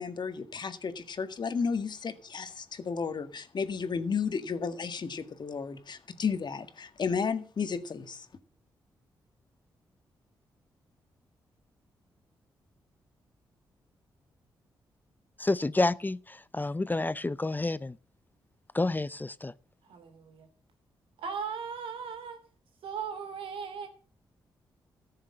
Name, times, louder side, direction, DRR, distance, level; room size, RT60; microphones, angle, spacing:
voice 1, 0.0-8.3, left 5 dB, 55° left, 1.7 m, -33 dB
voice 2, 15.4-18.0 18.7-19.5, left 2 dB, 20° left, 0.6 m, -29 dB
voice 3, 19.9-20.5 21.2-22.4 22.8-23.9, right 6 dB, 80° right, 2.9 m, -37 dB
14.0 x 6.7 x 7.5 m
supercardioid pair, 50°, 9 cm